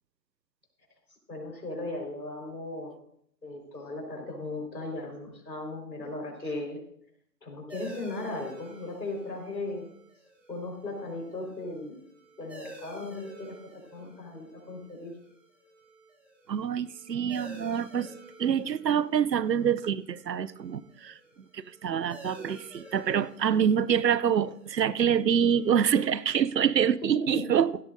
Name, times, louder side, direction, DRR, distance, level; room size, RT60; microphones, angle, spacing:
voice 1, 1.3-2.9 3.4-6.8 7.4-9.9 10.5-12.0 12.4-15.1 27.3-27.4, left 2 dB, 85° left, 1 dB, 4.8 m, -37 dB
sound 1, 7.7-26.8, right 1 dB, 5° right, 1.1 m, -51 dB
voice 2, 16.5-18.1 18.4-21.2 21.5-27.8, right 8 dB, 85° right, 18 dB, 0.7 m, -26 dB
16.5 x 13.0 x 2.6 m, 0.69 s
figure-of-eight pair, 135°, 49 cm